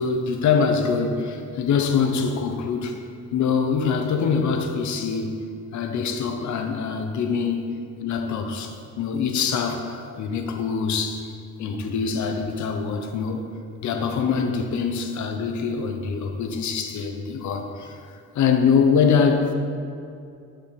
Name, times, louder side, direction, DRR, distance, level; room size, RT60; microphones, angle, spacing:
voice 1, 0.0-3.0 3.3-5.5 5.7-7.7 8.0-11.2 11.6-13.5 13.8-18.0 18.3-19.5, left 6 dB, 70° left, 5 dB, 0.9 m, -24 dB
10.5 x 5.8 x 3.3 m, 2.4 s
cardioid pair, 90°, 30 cm